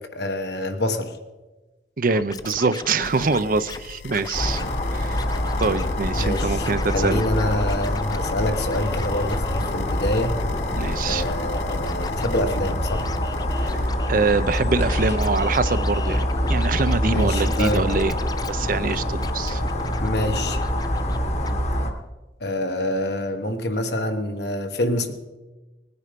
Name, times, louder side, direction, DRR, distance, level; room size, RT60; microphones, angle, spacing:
voice 1, 0.1-1.1 6.2-10.4 11.0-13.0 17.0-17.8 20.0-20.6 22.4-25.1, left 1 dB, 65° left, 6 dB, 1.3 m, -26 dB
voice 2, 2.0-4.6 4.9-5.2 5.6-7.2 10.8-11.2 13.6-18.2 18.5-19.6, right 4 dB, 50° right, 13 dB, 0.6 m, -24 dB
Scratching (performance technique), 2.1-3.8 4.1-4.7 5.1-5.9 6.2-21.2 21.4-21.5, left 3 dB, 20° left, 0.5 m, -37 dB
sound 1, 3.0-13.9, left 6 dB, 85° left, 0.5 m, -40 dB
sound 2, 4.3-21.9, left 1 dB, 40° left, 1.3 m, -25 dB
19.5 x 9.7 x 5.2 m, 1.2 s
head